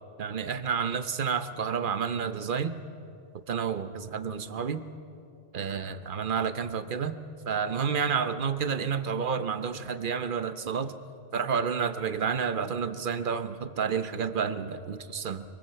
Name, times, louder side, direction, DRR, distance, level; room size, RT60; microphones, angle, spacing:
voice 1, 0.2-2.8 3.5-4.8 5.5-7.2 7.5-10.9 11.3-15.4, right 6 dB, 50° right, 11 dB, 1.0 m, -30 dB
24.0 x 24.0 x 5.7 m, 2.6 s
omnidirectional pair, 1.2 m